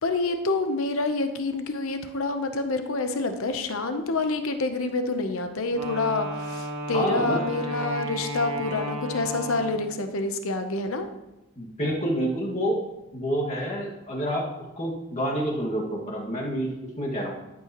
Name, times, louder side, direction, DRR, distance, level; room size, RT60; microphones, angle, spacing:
voice 1, 0.0-11.1, left 3 dB, 65° left, 7 dB, 0.8 m, -27 dB
Wind instrument woodwind instrument, 5.7-10.0, equal, 70° right, 1.4 m, -33 dB
voice 2, 6.9-7.4 11.6-12.8 13.1-14.5 14.8-17.3, equal, 30° left, -3 dB, 1.9 m, -28 dB
13.0 x 8.5 x 3.0 m, 0.97 s
head